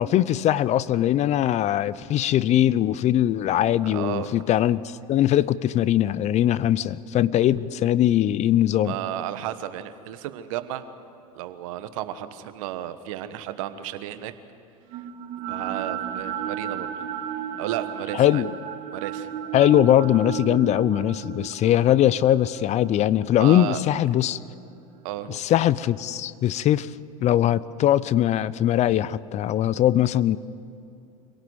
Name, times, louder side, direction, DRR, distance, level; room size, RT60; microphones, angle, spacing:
voice 1, 0.0-8.9 18.2-18.5 19.5-24.4 25.3-26.9 27.2-30.4, left 12 dB, 40° left, 18 dB, 0.6 m, -21 dB
voice 2, 3.8-4.4 8.8-10.8 11.3-14.3 14.9-15.1 15.5-16.9 17.6-18.4 18.9-19.3 23.3-23.8 25.0-25.4, right 12 dB, 65° right, 11 dB, 1.4 m, -33 dB
sound 1, 14.9-25.1, right 9 dB, 45° right, 4.8 m, -34 dB
25.5 x 17.5 x 8.1 m, 2.6 s
hypercardioid pair, 85°, 18 cm